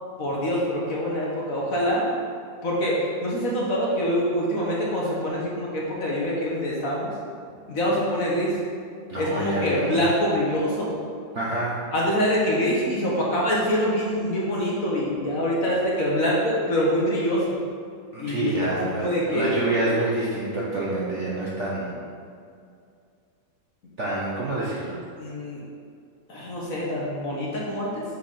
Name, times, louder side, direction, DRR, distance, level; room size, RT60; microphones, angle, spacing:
voice 1, 0.2-2.1 2.6-7.1 7.7-8.6 9.2-10.9 11.9-17.4 18.2-18.7 18.9-19.6 25.2-25.6 26.3-28.0, equal, 50° left, -5 dB, 1.6 m, -25 dB
voice 2, 9.1-10.1 11.3-11.9 18.1-22.0 24.0-24.9, right 2 dB, 50° right, -6 dB, 1.0 m, -27 dB
6.3 x 4.7 x 5.6 m, 2.3 s
omnidirectional pair, 2.1 m